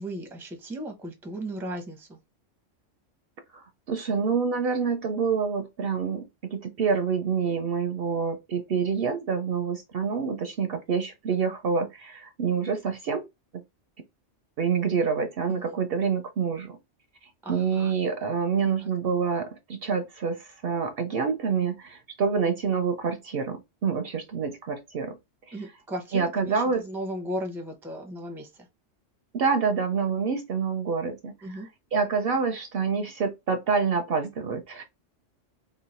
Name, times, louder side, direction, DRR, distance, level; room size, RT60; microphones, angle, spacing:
voice 1, 0.0-2.2 15.5-15.8 17.4-17.9 18.6-18.9 25.5-28.7 31.4-31.7, right 1 dB, 5° right, 0.5 m, -36 dB
voice 2, 3.5-13.2 14.6-16.8 17.5-25.2 25.5-25.6 26.1-26.8 29.3-31.6 31.9-34.8, right 5 dB, 60° right, 0.7 m, -27 dB
3.1 x 2.2 x 4.0 m
omnidirectional pair, 1.3 m